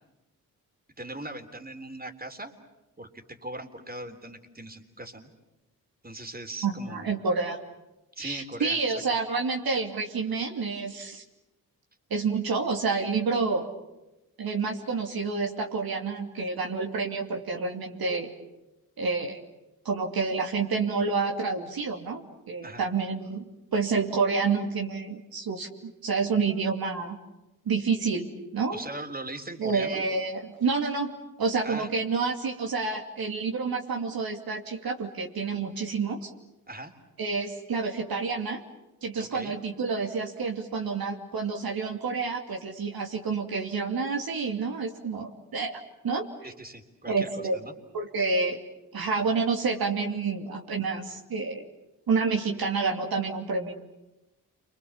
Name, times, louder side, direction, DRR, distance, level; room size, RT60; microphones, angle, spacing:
voice 1, 1.0-2.5 3.0-5.3 6.0-7.2 8.2-8.8 9.1-9.3 22.6-22.9 28.7-30.0 31.6-31.9 36.7-36.9 39.2-39.5 46.4-47.7, right 2 dB, 25° right, 6 dB, 3.6 m, -40 dB
voice 2, 6.6-7.6 8.2-11.2 12.1-13.7 14.4-18.3 19.0-19.4 19.8-25.7 26.0-27.2 27.7-28.8 29.6-31.1 31.4-36.3 37.2-38.6 39.0-45.8 46.0-46.3 47.1-47.6 47.9-48.6 48.9-51.6 52.1-53.7, right 4 dB, 70° right, 1 dB, 2.7 m, -29 dB
29.5 x 25.0 x 7.2 m, 0.99 s
supercardioid pair, 45°, 38 cm